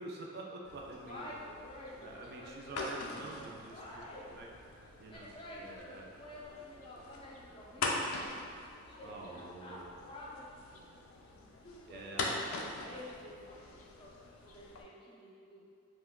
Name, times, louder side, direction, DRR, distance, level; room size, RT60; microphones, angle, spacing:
voice 1, 0.0-1.3 2.0-4.0 4.4-4.5 5.0-5.3 5.6-6.1 9.0-9.9 11.9-12.4, right 2 dB, 50° right, -1 dB, 0.3 m, -46 dB
sound 1, 0.6-14.8, left 3 dB, 90° left, 0.4 m, -43 dB
voice 2, 1.0-4.4 5.1-8.1 8.8-10.8 11.3-12.5 12.8-15.6, left 1 dB, 25° left, -5 dB, 0.4 m, -50 dB
2.9 x 2.2 x 3.5 m, 2.3 s
head